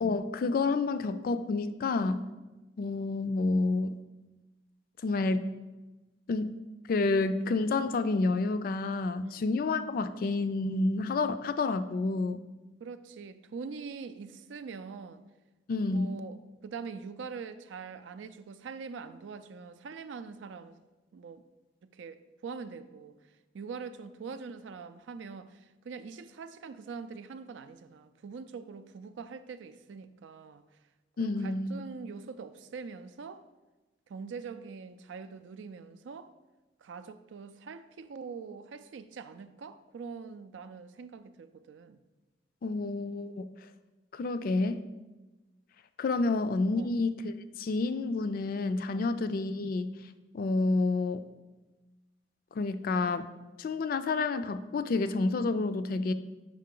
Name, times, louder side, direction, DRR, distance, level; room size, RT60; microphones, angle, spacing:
voice 1, 0.0-2.3 2.8-3.9 5.0-5.5 6.3-6.6 6.9-12.4 15.7-16.2 31.2-31.8 42.6-43.4 44.1-44.8 46.0-50.0 50.3-51.3 52.5-53.3 53.6-56.1, left 3 dB, 50° left, 0.3 m, -29 dB
voice 2, 12.8-15.2 15.9-16.4 16.6-20.8 21.1-21.4 21.9-23.1 23.5-30.6 31.2-33.4 34.1-36.3 36.8-42.0 46.3-46.4 46.8-46.9 48.9-49.1, right 5 dB, 90° right, 0.4 m, -43 dB
5.6 x 5.0 x 3.7 m
head